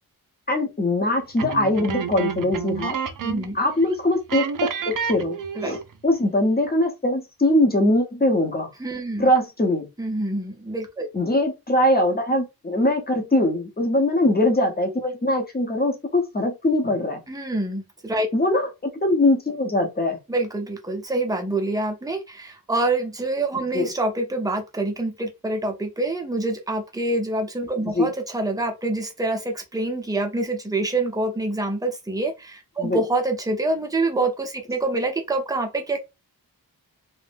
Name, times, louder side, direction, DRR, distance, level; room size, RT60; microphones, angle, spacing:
voice 1, 0.5-3.0 3.5-8.7 9.2-9.9 11.1-17.2 18.3-20.2 23.7-23.9 27.8-28.1 32.8-33.0, left 1 dB, 25° left, 0.8 m, -22 dB
sound 1, 1.4-3.6 3.8-4.0 4.3-5.9, right 7 dB, 60° right, 0.5 m, -29 dB
voice 2, 3.2-3.6 5.6-5.8 8.8-9.3 10.0-11.1 17.3-18.3 20.3-36.0, right 2 dB, 10° right, 0.6 m, -26 dB
2.5 x 2.1 x 3.3 m
wide cardioid pair, 110°, 38 cm